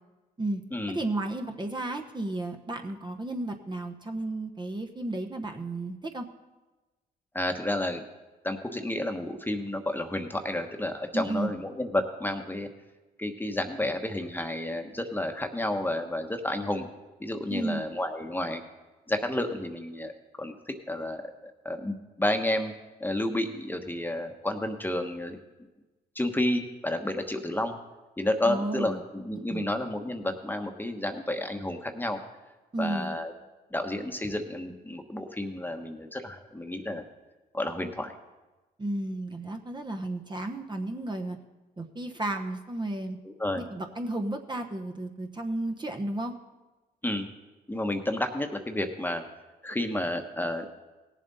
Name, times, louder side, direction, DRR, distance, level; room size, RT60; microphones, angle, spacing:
voice 1, 0.9-6.3 11.1-11.5 17.5-17.8 28.4-29.0 29.5-29.6 32.7-33.2 38.8-41.4 41.8-43.2 43.5-46.3, right 2 dB, 25° right, 3 dB, 1.0 m, -33 dB
voice 2, 7.3-8.0 8.4-12.7 13.2-16.9 17.2-18.6 19.1-20.1 20.4-22.7 23.0-25.4 26.1-27.8 28.2-32.2 32.8-33.3 33.7-37.0 37.5-38.1 43.2-43.6 47.0-47.3 47.7-49.2 49.6-50.8, left 1 dB, 10° left, 6 dB, 1.2 m, -31 dB
17.5 x 7.4 x 4.1 m, 1.2 s
supercardioid pair, 65°, 18 cm